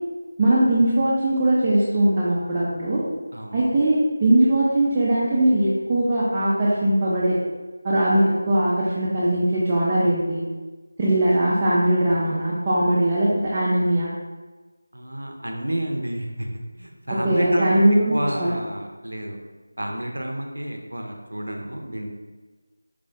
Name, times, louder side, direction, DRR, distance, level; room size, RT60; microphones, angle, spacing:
voice 1, 0.4-3.0 3.5-7.4 7.8-10.4 11.0-14.1 17.2-18.5, right 1 dB, 20° right, -8 dB, 0.4 m, -20 dB
voice 2, 3.3-3.8 14.9-16.5 16.8-17.8 18.1-19.4 19.8-22.1, right 1 dB, 80° right, 2 dB, 0.5 m, -30 dB
4.6 x 2.0 x 2.6 m, 1.3 s
figure-of-eight pair, 165°, 0 cm